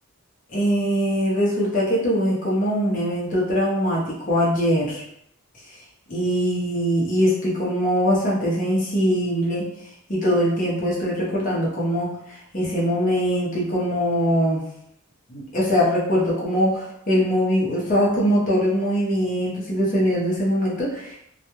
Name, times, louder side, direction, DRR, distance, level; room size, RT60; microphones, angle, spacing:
voice 1, 0.5-5.0 6.1-9.6 10.1-14.6 15.3-21.2, equal, 35° left, -6 dB, 0.7 m, -22 dB
2.3 x 2.2 x 3.0 m, 0.74 s
head